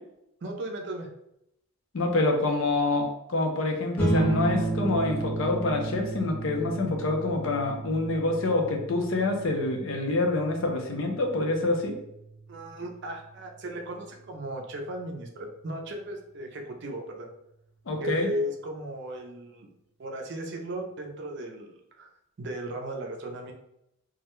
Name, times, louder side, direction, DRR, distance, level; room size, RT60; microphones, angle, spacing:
voice 1, 0.4-1.1 12.5-17.3 18.0-19.7 20.0-22.1 22.4-23.5, right 1 dB, 50° right, 2 dB, 0.4 m, -36 dB
voice 2, 1.9-11.9 17.9-18.3, left 2 dB, 65° left, 3 dB, 0.5 m, -26 dB
sound 1, 4.0-14.7, right 2 dB, 10° left, 0.4 m, -33 dB
2.3 x 2.1 x 2.9 m, 0.81 s
head